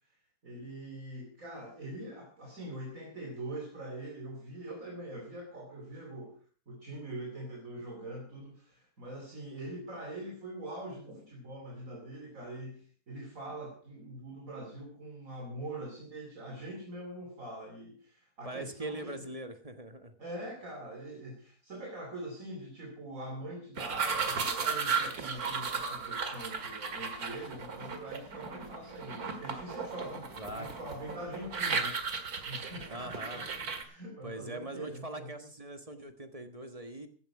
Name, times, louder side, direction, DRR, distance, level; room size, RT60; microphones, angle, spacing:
voice 1, 0.4-6.4 6.7-19.3 20.2-32.0 32.4-35.3, right 1 dB, 60° right, 0 dB, 3.2 m, -43 dB
voice 2, 18.4-20.1 30.4-30.7 32.9-33.5 34.2-37.1, right 1 dB, 25° right, 7 dB, 1.5 m, -42 dB
sound 1, 23.8-33.8, right 5 dB, 85° right, 2.3 m, -35 dB
15.5 x 12.0 x 4.8 m, 0.43 s
omnidirectional pair, 1.6 m